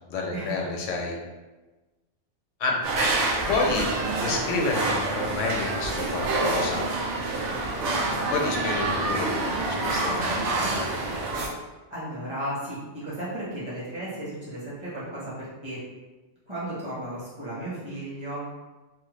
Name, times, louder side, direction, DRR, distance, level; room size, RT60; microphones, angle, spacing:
voice 1, 0.1-1.2 2.6-2.8 3.5-3.9 4.2-6.9 8.3-10.9, left 3 dB, 80° left, 1 dB, 0.9 m, -29 dB
sound 1, 2.8-11.5, right 2 dB, 75° right, 0.9 m, -27 dB
voice 2, 11.9-15.8 16.5-18.4, right 1 dB, 25° right, -10 dB, 1.3 m, -34 dB
3.0 x 2.1 x 3.1 m, 1.2 s
omnidirectional pair, 1.2 m